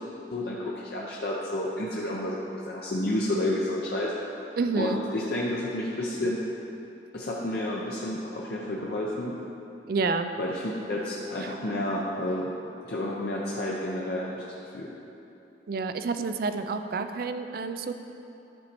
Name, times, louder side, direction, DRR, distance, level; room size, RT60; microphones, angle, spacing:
voice 1, 0.3-4.1 4.8-6.4 7.1-9.4 10.4-12.5 12.9-14.3 14.6-14.9, left 1 dB, 55° left, -4 dB, 0.6 m, -30 dB
voice 2, 4.6-5.0 9.9-10.3 11.4-11.5 15.7-17.9, right 4 dB, 50° right, 9 dB, 0.4 m, -29 dB
11.5 x 4.2 x 4.4 m, 2.9 s
head